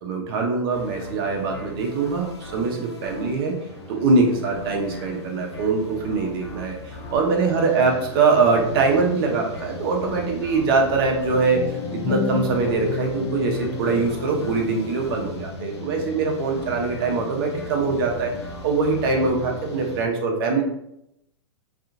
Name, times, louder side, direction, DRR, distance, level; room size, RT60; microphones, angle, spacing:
voice 1, 0.0-3.6 3.9-11.6 11.9-18.3 18.6-20.6, right 4 dB, 55° right, 1 dB, 0.8 m, -23 dB
sound 1, 0.7-20.0, left 1 dB, 80° left, 0.7 m, -38 dB
sound 2, 11.5-15.8, left 4 dB, 50° left, 0.4 m, -30 dB
2.7 x 2.4 x 2.5 m, 0.79 s
hypercardioid pair, 110°, 14 cm